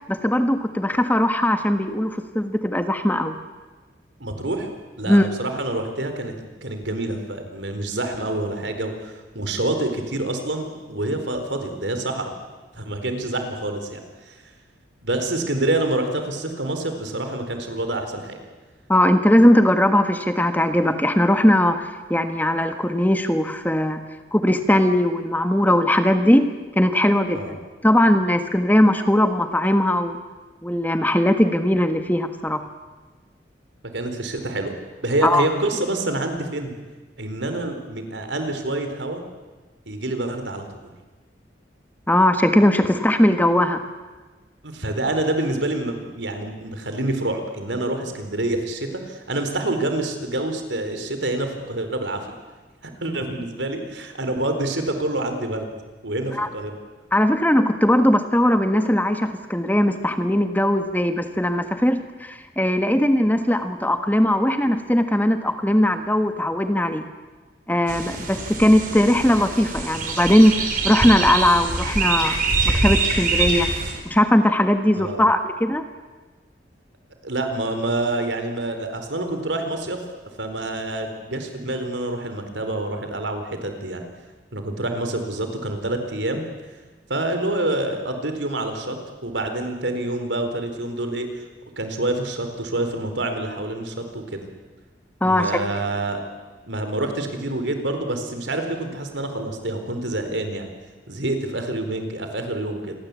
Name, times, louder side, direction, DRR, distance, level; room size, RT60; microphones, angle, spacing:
voice 1, 0.0-3.3 5.1-5.3 18.9-24.0 24.3-26.5 26.7-30.2 30.6-32.7 35.2-35.5 42.1-43.8 56.4-56.5 57.1-67.0 67.7-70.5 70.8-72.4 72.8-73.7 74.0-75.8 95.2-95.6, left 1 dB, 10° left, 7 dB, 1.4 m, -19 dB
voice 2, 4.2-4.7 5.0-6.3 6.6-12.3 12.8-14.0 14.3-14.4 15.0-18.4 27.3-27.5 33.9-34.7 35.0-36.7 37.2-39.2 39.9-40.6 44.6-52.2 52.8-55.7 56.0-56.7 75.0-75.3 77.2-80.0 80.4-84.0 84.5-86.4 87.1-89.0 89.2-91.3 91.8-94.5 95.2-96.2 96.6-100.7 101.1-102.9, right 2 dB, 80° right, 6 dB, 4.3 m, -27 dB
sound 1, 67.9-73.9, right 3 dB, 45° right, 5.1 m, -24 dB
27.5 x 23.0 x 8.5 m, 1.3 s
head